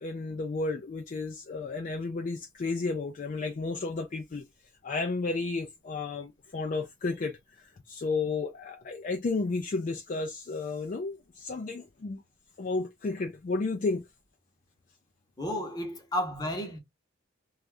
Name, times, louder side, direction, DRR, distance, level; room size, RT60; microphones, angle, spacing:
voice 1, 0.0-4.4 4.8-12.2 12.6-14.0, left 3 dB, 40° left, 0.3 m, -32 dB
voice 2, 15.4-16.8, left 1 dB, 20° left, 0.8 m, -32 dB
2.6 x 2.3 x 3.2 m
head